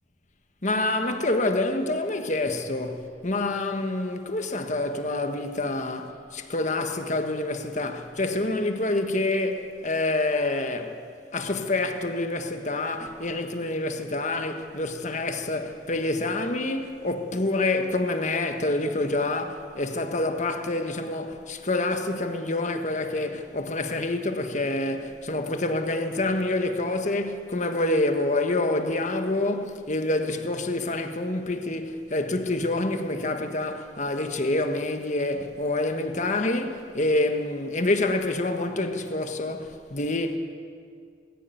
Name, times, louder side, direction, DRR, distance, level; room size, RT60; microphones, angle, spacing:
voice 1, 0.6-10.9 11.3-40.4, left 2 dB, 40° left, 1.5 m, -27 dB
20.5 x 16.0 x 9.3 m
head